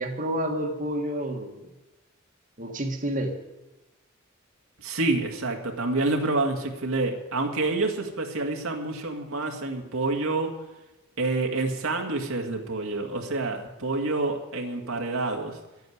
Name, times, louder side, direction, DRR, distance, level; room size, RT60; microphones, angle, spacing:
voice 1, 0.0-1.7 2.6-3.4, right 1 dB, 40° right, 2 dB, 1.6 m, -29 dB
voice 2, 4.8-10.6 11.2-15.6, right 2 dB, 80° right, 2 dB, 2.0 m, -28 dB
12.0 x 9.3 x 9.4 m, 1.0 s
head